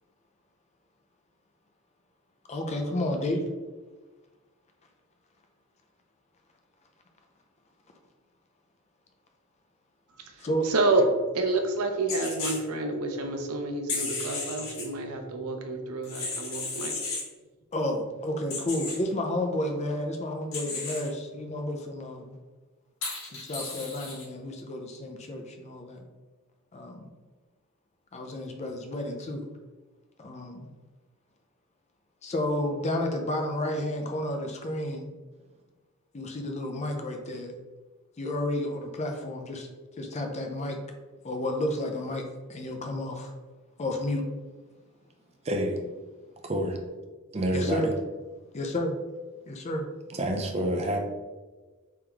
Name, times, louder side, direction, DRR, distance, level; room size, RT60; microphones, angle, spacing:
voice 1, 2.5-3.5 10.4-10.7 11.0-11.1 17.7-22.4 23.3-26.0 26.7-27.1 28.1-29.5 30.2-30.7 32.2-35.1 36.1-37.5 38.2-39.7 40.0-40.8 41.2-42.2 42.5-43.3 43.8-44.2 47.5-47.9 48.5-49.0 49.5-49.8, left 1 dB, 30° left, 3 dB, 0.5 m, -31 dB
voice 2, 10.3-11.0 11.3-17.0, right 2 dB, 90° right, 4 dB, 0.6 m, -29 dB
sound 1, 12.1-12.6 13.9-14.8 16.0-17.3 18.5-19.0 20.5-21.1 23.0-24.2, left 3 dB, 70° left, 1.4 m, -34 dB
voice 3, 45.4-45.8 46.4-46.8 47.3-47.9 50.1-51.0, right 1 dB, 30° right, 3 dB, 0.5 m, -28 dB
3.5 x 3.0 x 3.5 m, 1.3 s
head